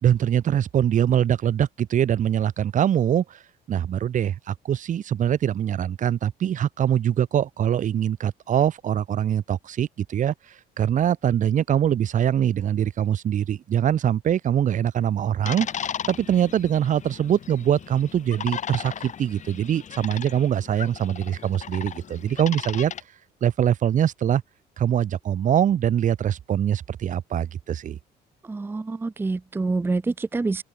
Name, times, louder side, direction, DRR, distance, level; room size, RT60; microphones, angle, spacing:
voice 1, 0.0-3.4 3.7-15.7 16.1-22.9 23.4-24.4 24.8-28.0, right 10 dB, 50° right, 1.3 m, -23 dB
sound 1, 15.4-23.0, left 8 dB, 45° left, 4.2 m, -36 dB
voice 2, 28.4-30.6, right 3 dB, 15° right, 0.6 m, -26 dB
open air
cardioid pair, 110°, 17 cm